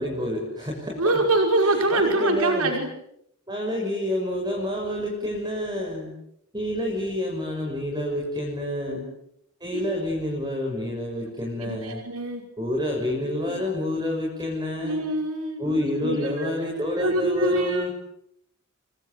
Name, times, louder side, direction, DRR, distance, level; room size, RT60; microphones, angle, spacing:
voice 1, 0.0-1.2 1.6-2.7 3.5-6.1 6.5-9.1 9.6-12.0 12.6-15.0 15.6-17.9, left 1 dB, 20° right, -1 dB, 6.6 m, -28 dB
voice 2, 1.0-2.9 8.9-9.1 9.7-9.8 11.6-12.4 13.5-13.6 14.8-16.5 17.0-17.9, right 2 dB, 85° right, 3 dB, 5.6 m, -25 dB
29.0 x 24.5 x 8.0 m, 0.77 s
head